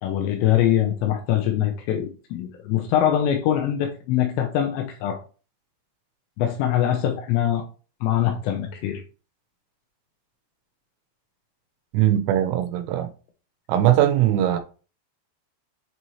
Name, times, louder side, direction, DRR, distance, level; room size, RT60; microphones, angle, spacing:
voice 1, 0.0-5.2 6.4-7.6 8.0-9.0, left 11 dB, 80° left, 2.7 m, -23 dB
voice 2, 11.9-13.1 13.7-14.6, right 12 dB, 85° right, 3.1 m, -20 dB
7.5 x 4.2 x 3.1 m
omnidirectional pair, 5.7 m